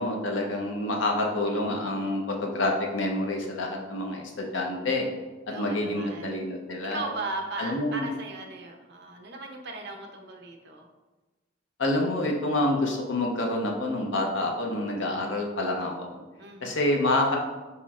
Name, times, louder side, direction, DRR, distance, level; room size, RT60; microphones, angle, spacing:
voice 1, 0.0-5.1 5.5-7.0 7.6-8.1 11.8-16.2 16.6-17.4, left 1 dB, 70° left, 1 dB, 0.7 m, -27 dB
voice 2, 5.5-6.3 6.8-10.9 16.4-16.9, right 2 dB, 60° right, 3 dB, 0.6 m, -37 dB
4.3 x 4.3 x 2.4 m, 1.2 s
head